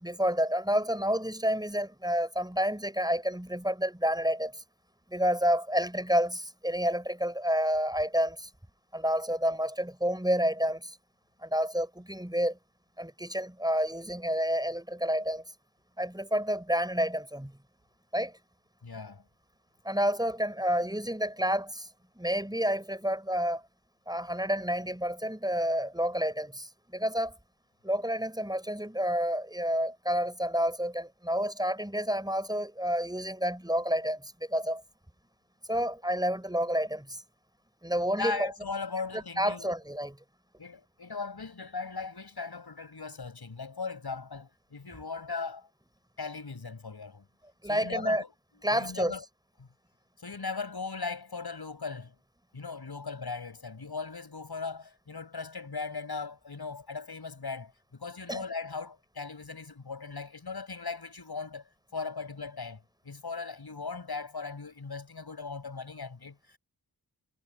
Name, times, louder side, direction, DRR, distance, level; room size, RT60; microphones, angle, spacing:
voice 1, 0.0-4.6 5.1-8.5 8.9-11.0 11.4-12.6 13.0-15.4 16.0-17.5 18.1-18.3 19.8-21.9 22.2-23.6 24.1-27.3 27.8-34.8 35.7-37.2 37.8-38.5 39.1-40.1 47.6-48.2 48.6-49.1 58.3-58.4, equal, 10° right, 5.6 m, -29 dB
voice 2, 18.8-19.2 38.1-39.7 40.6-45.7 46.2-47.2 47.6-48.3 48.7-49.2 49.6-49.7 50.2-52.2 52.5-66.6, left 4 dB, 70° left, 7.5 m, -38 dB
wide cardioid pair, 60°, 39 cm